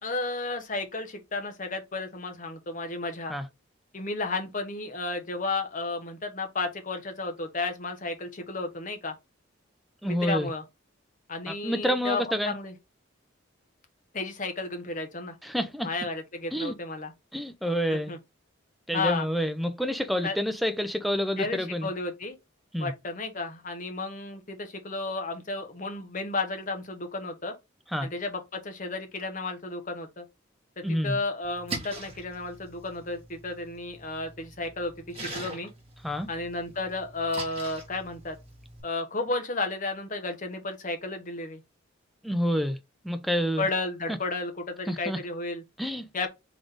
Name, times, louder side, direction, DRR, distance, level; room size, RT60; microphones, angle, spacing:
voice 1, 0.0-3.3 3.9-9.1 10.0-10.6 11.3-12.7 14.1-15.3 15.8-17.1 17.9-18.2 18.9-19.3 20.2-20.4 21.4-22.4 22.8-27.5 28.0-30.2 30.8-35.7 36.3-38.4 38.8-41.6 43.6-45.6 46.1-46.3, left 3 dB, 40° left, 1.0 m, -33 dB
voice 2, 10.0-10.5 11.5-12.5 15.4-15.9 16.5-16.7 17.3-18.1 18.9-21.9 22.7-22.9 27.9-28.1 30.8-31.2 36.0-36.3 42.2-42.8 43.0-43.7 44.9-45.2 45.8-46.3, equal, ahead, 0.4 m, -28 dB
Splash splatter, 31.4-38.8, right 2 dB, 30° right, 1.5 m, -42 dB
3.8 x 3.7 x 3.4 m
head